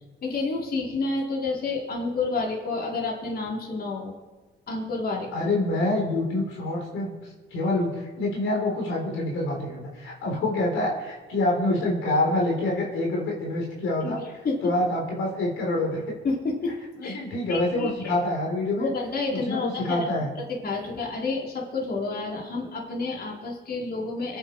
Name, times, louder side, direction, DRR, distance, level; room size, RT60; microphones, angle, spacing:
voice 1, 0.2-4.1 4.7-5.3 14.0-14.6 16.2-16.8 17.0-17.2 17.5-18.1 18.8-20.0 20.6-24.4, left 3 dB, 50° left, -2 dB, 4.1 m, -29 dB
voice 2, 5.3-7.2 7.5-14.2 14.6-16.0 17.0-18.9 19.3-20.3, left 2 dB, 90° left, 0 dB, 4.0 m, -26 dB
24.0 x 10.5 x 4.7 m, 1.2 s
cardioid pair, 90°, 20 cm